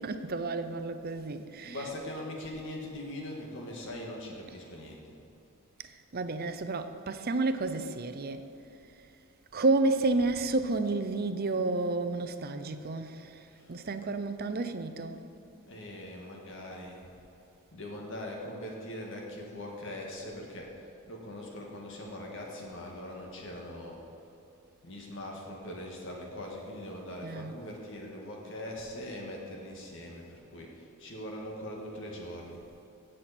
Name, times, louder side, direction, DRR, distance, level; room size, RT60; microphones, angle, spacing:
voice 1, 0.0-1.9 5.8-8.4 9.5-15.2 27.2-27.6, right 3 dB, 45° right, 0.6 m, -31 dB
voice 2, 1.6-5.1 10.5-10.6 13.5-13.8 15.7-17.1 17.7-24.0 24.8-32.6, left 1 dB, 60° left, 1.9 m, -41 dB
16.5 x 7.7 x 4.3 m
head